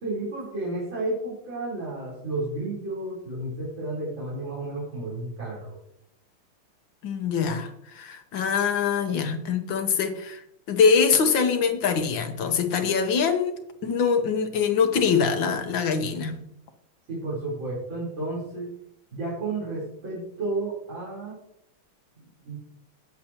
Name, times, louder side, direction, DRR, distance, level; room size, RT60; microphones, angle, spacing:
voice 1, 0.0-5.7 17.1-18.7 19.1-21.4 22.2-22.6, right 2 dB, 65° right, -8 dB, 4.7 m, -32 dB
voice 2, 7.0-10.4 10.7-16.4, left 6 dB, 65° left, 7 dB, 1.7 m, -24 dB
17.5 x 7.6 x 2.9 m, 0.78 s
omnidirectional pair, 2.3 m